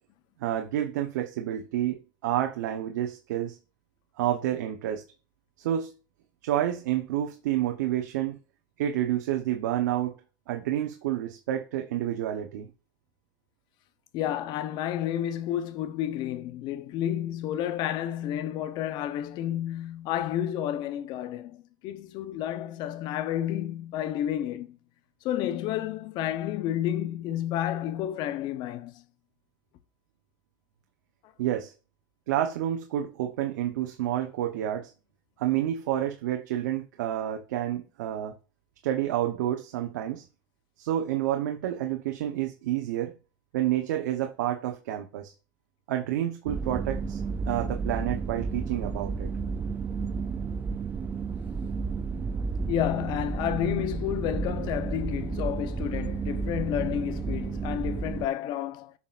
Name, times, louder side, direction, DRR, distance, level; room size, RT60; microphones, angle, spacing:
voice 1, 0.4-3.6 4.2-5.0 5.6-5.9 6.4-8.4 8.8-10.2 10.5-12.7 31.4-31.7 32.3-34.9 35.4-38.4 38.8-40.2 40.8-43.1 43.5-45.3 45.9-47.2 47.5-49.3, right 12 dB, 85° right, 0.9 m, -29 dB
voice 2, 14.1-24.8 25.2-29.0 51.8-52.3 52.7-58.9, left 11 dB, 50° left, 0.7 m, -31 dB
sound 1, 46.5-58.3, right 5 dB, 15° right, 0.3 m, -32 dB
7.3 x 5.8 x 2.5 m
supercardioid pair, 135°, 10 cm